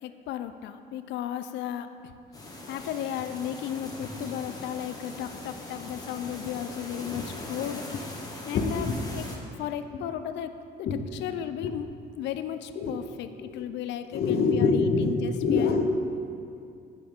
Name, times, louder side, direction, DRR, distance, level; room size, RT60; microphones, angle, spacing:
voice 1, 0.0-2.1 2.7-8.2 8.5-9.3 9.6-15.7, left 10 dB, 80° left, 10 dB, 0.5 m, -35 dB
sound 1, 2.3-9.4, left 1 dB, 20° left, 1.4 m, -41 dB
voice 2, 8.5-9.0 10.9-11.0 12.8-12.9 13.4-13.7 14.1-16.0, left 4 dB, 60° left, 4 dB, 0.9 m, -25 dB
8.5 x 8.2 x 3.6 m, 2.4 s
cardioid pair, 90°, 18 cm